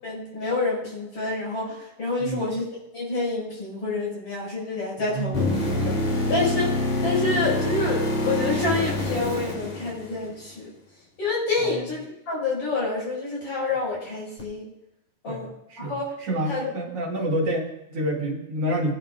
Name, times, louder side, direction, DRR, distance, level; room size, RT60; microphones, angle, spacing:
voice 1, 0.0-2.6 2.9-5.4 5.9-6.7 7.0-10.7 11.2-14.7 15.2-15.5 15.8-16.1 16.5-16.7, left 3 dB, 50° left, -5 dB, 7.1 m, -28 dB
voice 2, 2.2-2.5 5.0-5.3 11.6-11.8 15.3-15.4 15.7-15.9 16.2-18.9, right 1 dB, 55° right, -2 dB, 2.7 m, -28 dB
sound 1, 5.3-10.4 14.4-14.5, left 1 dB, 70° left, 4.5 m, -26 dB
22.0 x 11.0 x 2.6 m, 0.88 s
omnidirectional pair, 3.3 m